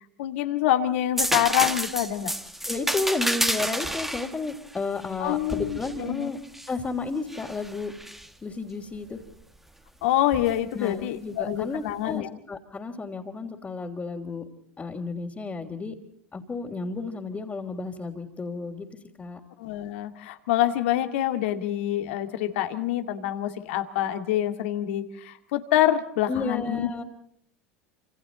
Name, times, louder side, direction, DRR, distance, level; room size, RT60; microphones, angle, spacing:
voice 1, 0.2-2.3 5.2-6.3 10.0-12.3 19.6-26.9, left 12 dB, 70° left, 7 dB, 2.3 m, -26 dB
sound 1, 1.2-6.8 7.3-8.3 10.3-10.5, right 1 dB, 5° right, 1.8 m, -30 dB
voice 2, 2.7-6.4 6.7-8.0 8.4-9.3 10.7-14.5 14.8-16.0 16.3-18.9 19.2-19.4 26.3-27.0, left 3 dB, 20° left, -3 dB, 3.3 m, -32 dB
28.5 x 27.5 x 4.0 m, 0.66 s
hypercardioid pair, 80°, 7 cm